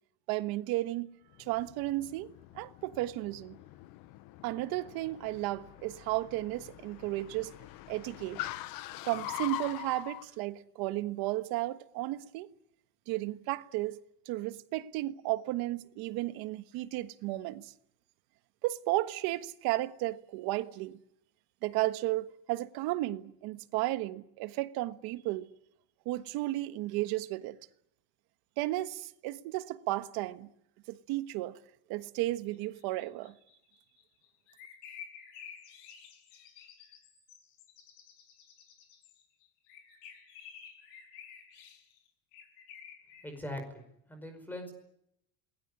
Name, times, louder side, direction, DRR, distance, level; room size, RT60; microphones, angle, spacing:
voice 1, 0.3-3.6 4.4-7.5 7.9-8.4 9.0-12.5 13.1-14.0 14.2-17.7 18.6-21.0 21.6-25.5 26.0-27.6 28.6-30.5 30.9-31.6 31.9-33.4, right 17 dB, 70° right, 1.4 m, -34 dB
Car, 1.3-10.3, left 16 dB, 60° left, 1.0 m, -44 dB
sound 1, 32.5-43.3, left 8 dB, 80° left, 6.5 m, -52 dB
voice 2, 43.2-43.8 44.1-44.7, left 1 dB, 5° left, 5.2 m, -41 dB
28.0 x 20.5 x 9.9 m
cardioid pair, 175°, 39 cm